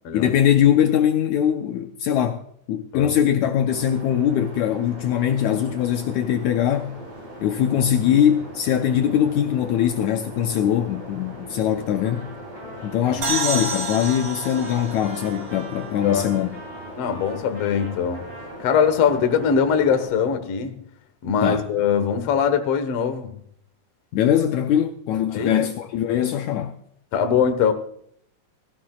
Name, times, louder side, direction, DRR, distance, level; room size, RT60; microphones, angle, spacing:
voice 1, 0.1-2.4 2.7-6.9 7.4-12.3 12.8-16.5 21.4-21.7 24.1-26.7, left 10 dB, 90° left, 1.6 m, -21 dB
sound 1, 3.7-20.1, right 1 dB, 60° right, 7.8 m, -40 dB
Trumpet, 12.0-20.0, right 1 dB, 20° right, 7.3 m, -43 dB
sound 2, 13.2-16.8, right 2 dB, 75° right, 0.8 m, -30 dB
voice 2, 17.0-18.3 18.6-20.8 21.2-23.4 25.3-25.5 27.1-27.7, left 7 dB, 60° left, 1.7 m, -22 dB
17.5 x 15.5 x 2.4 m
omnidirectional pair, 4.3 m